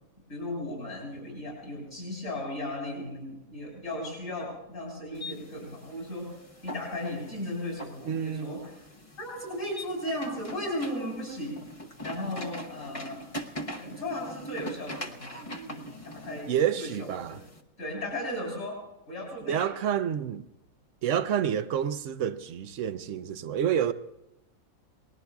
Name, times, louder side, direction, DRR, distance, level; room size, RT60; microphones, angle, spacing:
voice 1, 0.3-6.4 6.6-8.8 9.2-11.6 12.0-13.3 13.8-17.4 17.8-18.8 19.1-19.7, left 1 dB, 60° left, 7.7 m, -36 dB
sound 1, 5.1-17.6, equal, 25° left, 1.0 m, -42 dB
voice 2, 8.1-8.5 16.5-17.4 19.5-20.4 21.0-23.9, right 9 dB, 65° right, 1.0 m, -28 dB
29.5 x 20.5 x 2.3 m
omnidirectional pair, 1.5 m